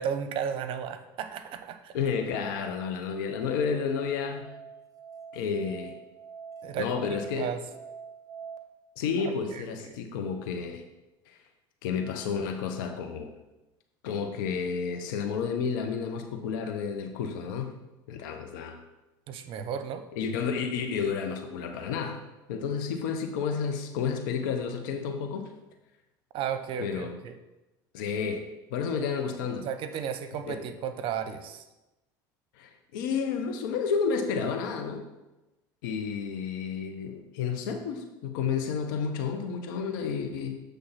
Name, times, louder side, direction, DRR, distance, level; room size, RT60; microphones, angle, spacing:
voice 1, 0.0-2.0 6.6-7.6 9.2-10.0 19.3-20.0 26.3-27.3 29.0-29.1 29.6-31.6, right 8 dB, 55° right, 10 dB, 0.8 m, -34 dB
voice 2, 1.9-4.5 5.3-6.0 6.8-7.5 9.0-10.8 11.3-11.4 11.8-13.4 14.0-17.8 18.1-18.8 20.1-22.2 22.5-25.5 26.8-27.1 27.9-29.7 30.5-30.6 32.6-35.0 35.8-40.6, left 6 dB, 80° left, 5 dB, 0.8 m, -31 dB
Musical instrument, 3.3-8.6, right 6 dB, 35° right, 1.0 m, -45 dB
7.9 x 3.4 x 5.7 m, 1.0 s
hypercardioid pair, 80°, 11 cm